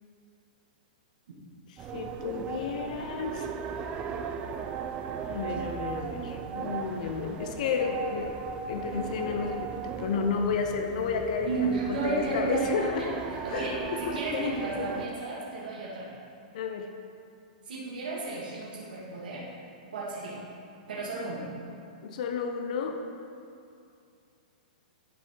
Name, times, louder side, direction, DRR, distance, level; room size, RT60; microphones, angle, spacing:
voice 1, 1.7-3.5 5.3-8.3 8.7-14.9 16.5-16.9 22.0-23.0, left 5 dB, 55° left, 4 dB, 0.6 m, -32 dB
sound 1, 1.8-15.1, right 6 dB, 20° right, 0.3 m, -37 dB
voice 2, 11.5-16.1 17.7-19.4 19.9-20.4 20.9-21.4, right 3 dB, 85° right, -7 dB, 1.9 m, -33 dB
11.0 x 5.1 x 3.8 m, 2.5 s
hypercardioid pair, 160°, 5 cm